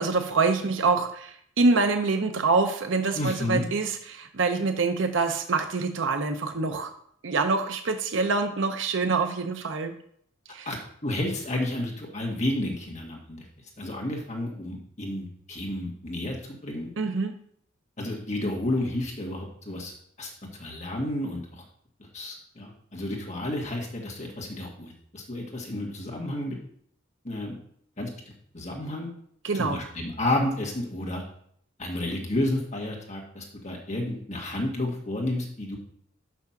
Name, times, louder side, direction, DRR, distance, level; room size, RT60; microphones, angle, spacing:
voice 1, 0.0-6.9 7.2-9.9 10.5-10.7 17.0-17.3 29.4-29.8, right 4 dB, 75° right, 7 dB, 0.6 m, -25 dB
voice 2, 3.2-3.7 10.7-10.8 11.0-13.4 13.8-16.9 18.0-20.3 20.6-21.6 22.0-26.6 27.2-27.6 28.0-28.1 28.5-29.1 29.5-31.2 31.8-35.8, left 1 dB, 35° left, -1 dB, 1.8 m, -31 dB
6.0 x 5.8 x 5.8 m, 0.66 s
head